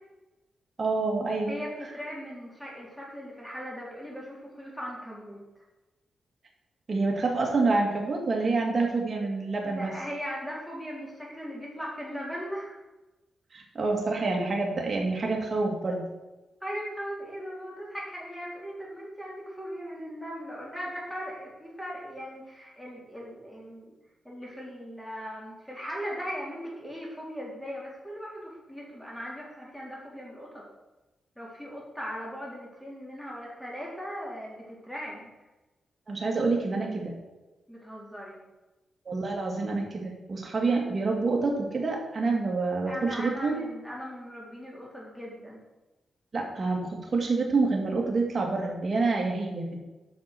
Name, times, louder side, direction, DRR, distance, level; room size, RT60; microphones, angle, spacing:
voice 1, 0.8-1.6 6.9-9.9 13.5-16.0 36.1-37.1 39.1-43.6 46.3-49.8, right 3 dB, 40° right, 0 dB, 2.3 m, -27 dB
voice 2, 1.5-5.4 9.6-12.8 16.6-23.9 24.2-30.6 31.4-35.3 37.7-38.4 42.9-45.6, equal, 5° left, -4 dB, 3.7 m, -38 dB
8.6 x 5.9 x 6.1 m, 1.1 s
cardioid pair, 110°, 0 cm